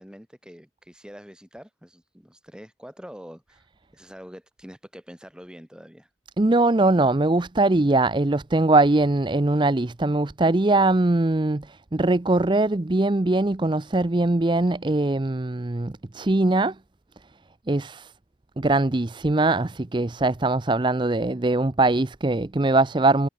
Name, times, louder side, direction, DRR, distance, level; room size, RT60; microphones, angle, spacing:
voice 1, 0.0-3.7 3.9-6.1, equal, 5° right, 4.2 m, -45 dB
voice 2, 6.4-11.7 11.9-16.7 17.7-18.1 18.6-23.3, right 2 dB, 25° right, 0.6 m, -21 dB
head